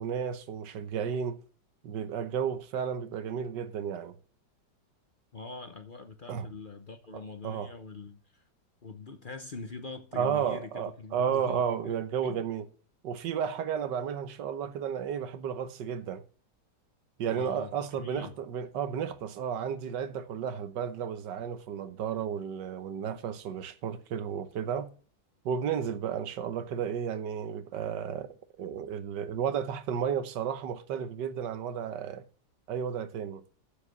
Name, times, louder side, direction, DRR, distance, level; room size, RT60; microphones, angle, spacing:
voice 1, 0.0-1.4 1.8-4.2 6.3-6.5 7.4-7.7 10.1-12.7 13.0-16.2 17.2-24.9 25.4-32.2 32.7-33.4, right 8 dB, 75° right, 1.5 m, -33 dB
voice 2, 5.3-8.4 8.8-11.9 12.2-12.4 17.3-17.7 18.0-18.4, left 4 dB, 45° left, 0.7 m, -43 dB
7.4 x 6.9 x 6.6 m
omnidirectional pair, 2.0 m